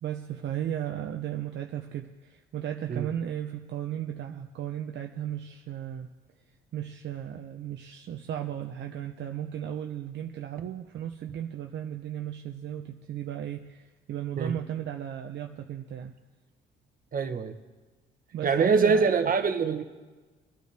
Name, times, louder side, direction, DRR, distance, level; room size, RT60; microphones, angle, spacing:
voice 1, 0.0-6.1 6.7-16.1 18.3-19.3, right 10 dB, 65° right, 4 dB, 0.7 m, -35 dB
voice 2, 17.1-17.5 18.4-19.8, right 5 dB, 45° right, 7 dB, 1.2 m, -24 dB
24.0 x 9.3 x 3.4 m, 1.3 s
cardioid pair, 90°, 20 cm